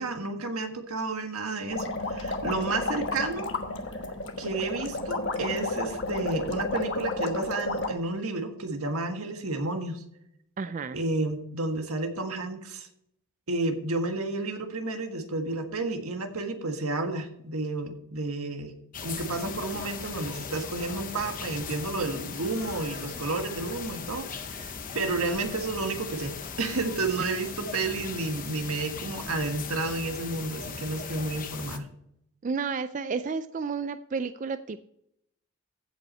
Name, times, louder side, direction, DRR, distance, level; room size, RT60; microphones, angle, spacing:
voice 1, 0.0-3.5 4.4-10.0 10.9-12.9 13.5-18.7 19.0-31.9, right 2 dB, 85° right, 5 dB, 1.6 m, -31 dB
sound 1, 1.7-7.9, left 2 dB, 55° left, 1.2 m, -32 dB
voice 2, 10.6-11.0 32.4-34.8, right 5 dB, 35° right, 12 dB, 0.3 m, -31 dB
sound 2, 18.9-31.8, left 5 dB, 40° left, 0.9 m, -38 dB
sound 3, 19.4-29.6, left 2 dB, 85° left, 4.8 m, -52 dB
15.5 x 5.5 x 4.3 m, 0.75 s
head